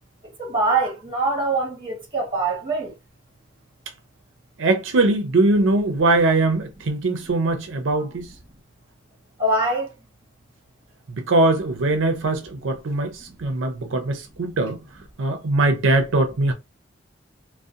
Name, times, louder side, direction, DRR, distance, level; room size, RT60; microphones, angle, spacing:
voice 1, 0.4-2.9 9.4-9.9, right 2 dB, 25° right, 1.1 m, -23 dB
voice 2, 4.6-8.3 11.1-14.8 15.2-16.5, right 2 dB, 85° right, 0.5 m, -21 dB
2.7 x 2.1 x 2.4 m
head